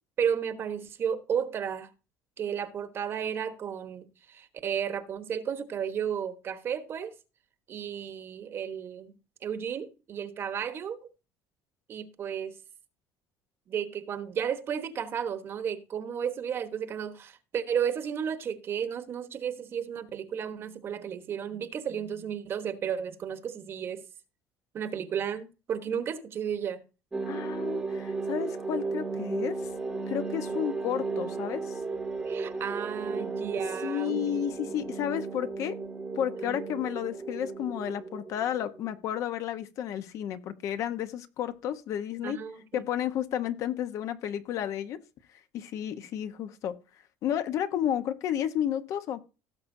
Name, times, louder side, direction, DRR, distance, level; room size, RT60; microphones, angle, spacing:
voice 1, 0.2-1.9 2.4-7.1 7.7-9.2 9.4-11.1 11.9-12.5 13.7-24.0 24.7-26.8 30.5-30.6 32.2-34.7 36.5-36.6 42.2-42.8, right 8 dB, 35° right, 1.2 m, -33 dB
sound 1, 27.1-38.9, right 4 dB, 10° right, 1.2 m, -35 dB
voice 2, 27.3-29.6 30.1-31.8 33.8-35.8 36.1-42.4 42.7-45.0 45.5-46.8 47.2-49.2, left 10 dB, 50° left, 1.1 m, -32 dB
17.0 x 7.2 x 2.7 m
cardioid pair, 150°, 7 cm